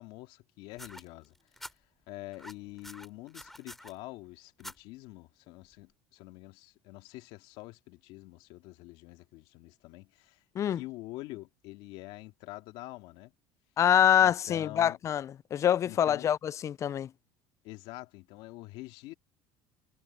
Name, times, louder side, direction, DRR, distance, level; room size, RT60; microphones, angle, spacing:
voice 1, 0.0-1.3 2.1-10.4 10.7-13.3 14.2-15.0 15.9-16.3 17.6-19.1, left 19 dB, 70° left, 2.3 m, -46 dB
sound 1, 0.7-1.7 2.3-3.9 4.6-4.8 5.7-5.8, left 1 dB, ahead, 4.1 m, -46 dB
voice 2, 13.8-17.1, left 10 dB, 30° left, 0.3 m, -25 dB
cardioid pair, 125°, 10 cm